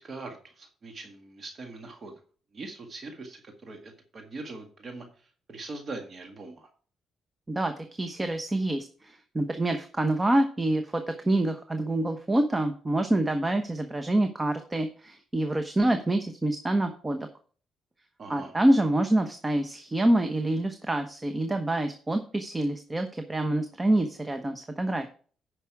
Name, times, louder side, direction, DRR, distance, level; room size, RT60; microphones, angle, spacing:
voice 1, 0.0-2.2 2.5-6.7 18.2-18.6, right 3 dB, 45° right, 4 dB, 1.8 m, -42 dB
voice 2, 8.0-17.3 18.3-25.1, right 1 dB, 20° right, 7 dB, 1.0 m, -26 dB
9.5 x 5.9 x 4.7 m, 0.43 s
cardioid pair, 90°, 0 cm